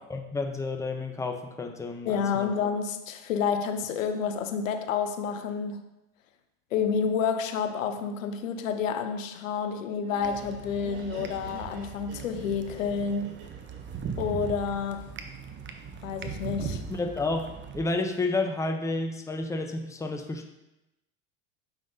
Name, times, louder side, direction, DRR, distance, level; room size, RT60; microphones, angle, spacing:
voice 1, 0.1-2.5 16.9-20.5, left 3 dB, 10° left, 5 dB, 0.7 m, -31 dB
voice 2, 2.1-5.8 6.7-13.4 14.2-15.1 16.0-16.8, left 6 dB, 85° left, 8 dB, 0.7 m, -29 dB
Laughter, 9.8-14.9, right 3 dB, 55° right, 2.3 m, -47 dB
sound 1, 10.2-17.8, right 6 dB, 30° right, 0.8 m, -39 dB
7.0 x 5.7 x 2.7 m, 0.95 s
hypercardioid pair, 85°, 38 cm